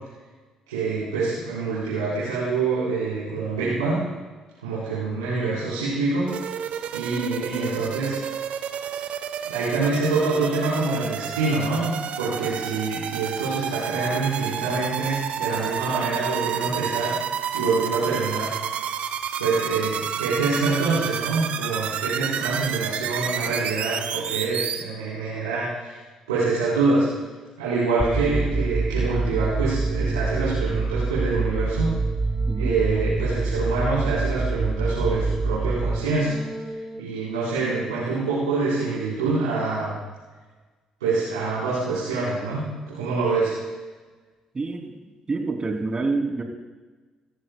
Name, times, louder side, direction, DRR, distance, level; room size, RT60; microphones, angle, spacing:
voice 1, 0.7-4.0 4.6-6.3 6.9-8.2 9.4-17.1 17.5-18.5 19.4-25.9 26.3-27.1 27.6-31.9 32.6-36.4 37.0-39.9 41.0-43.5, right 3 dB, 85° right, -10 dB, 4.1 m, -25 dB
sound 1, 6.3-24.8, right 8 dB, 60° right, 0.9 m, -30 dB
sound 2, 28.0-37.0, right 3 dB, 10° right, 1.2 m, -26 dB
voice 2, 44.5-44.9 45.3-46.4, right 3 dB, 35° right, 3 dB, 3.0 m, -27 dB
25.5 x 14.0 x 2.3 m, 1.3 s
figure-of-eight pair, 45°, 3 cm